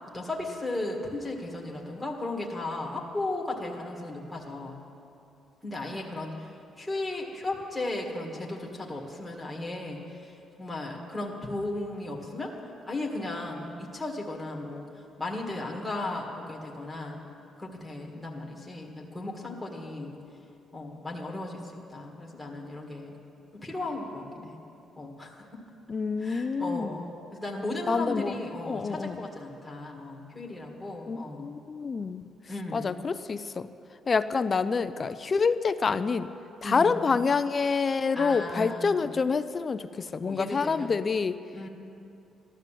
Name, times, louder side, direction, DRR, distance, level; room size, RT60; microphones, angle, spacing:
voice 1, 0.1-4.7 5.6-6.5 6.8-12.5 12.8-14.9 15.2-17.2 17.6-20.1 20.7-23.2 23.5-24.6 25.0-25.5 26.2-31.5 32.5-32.9 36.6-37.0 38.1-39.0 40.2-40.9 41.5-41.7, left 2 dB, 5° left, -2 dB, 1.7 m, -35 dB
voice 2, 25.9-26.9 27.9-29.3 31.1-32.2 32.7-33.7 34.1-36.3 36.6-41.4, left 5 dB, 25° left, 12 dB, 0.4 m, -27 dB
14.5 x 12.0 x 7.5 m, 2.7 s
cardioid pair, 170°, 0 cm